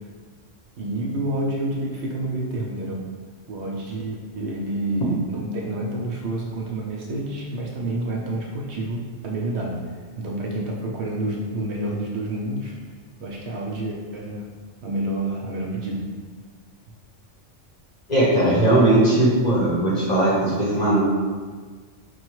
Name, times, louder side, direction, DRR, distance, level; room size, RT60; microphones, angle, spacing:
voice 1, 0.8-3.0 3.5-12.8 13.2-14.5 14.8-16.0, right 1 dB, 70° right, -2 dB, 0.8 m, -28 dB
voice 2, 18.1-21.0, right 1 dB, 40° left, -6 dB, 0.8 m, -18 dB
4.9 x 2.3 x 3.0 m, 1.5 s
omnidirectional pair, 1.3 m